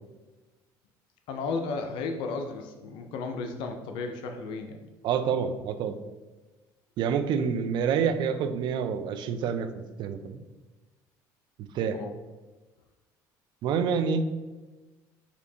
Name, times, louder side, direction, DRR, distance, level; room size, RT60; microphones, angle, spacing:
voice 1, 1.3-4.8 11.9-12.1, left 4 dB, 70° left, 5 dB, 0.4 m, -34 dB
voice 2, 5.0-6.0 7.0-9.7 10.0-10.4 11.7-12.0 13.6-14.3, right 6 dB, 60° right, 9 dB, 0.3 m, -27 dB
4.2 x 2.7 x 2.7 m, 1.2 s
supercardioid pair, 95°, 9 cm